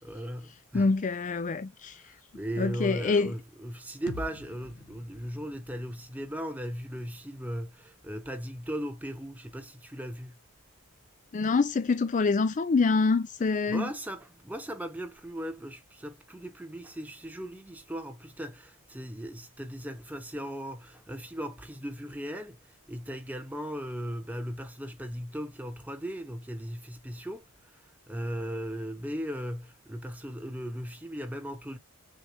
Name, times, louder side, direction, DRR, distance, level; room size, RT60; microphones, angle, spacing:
voice 1, 0.0-0.9 1.9-10.4 13.7-31.8, equal, 5° right, 0.9 m, -38 dB
voice 2, 0.7-2.0 2.6-3.3 11.3-13.9, left 4 dB, 35° left, 0.4 m, -26 dB
sound 1, 4.1-7.9, left 1 dB, 85° left, 0.9 m, -46 dB
6.5 x 2.4 x 2.9 m
head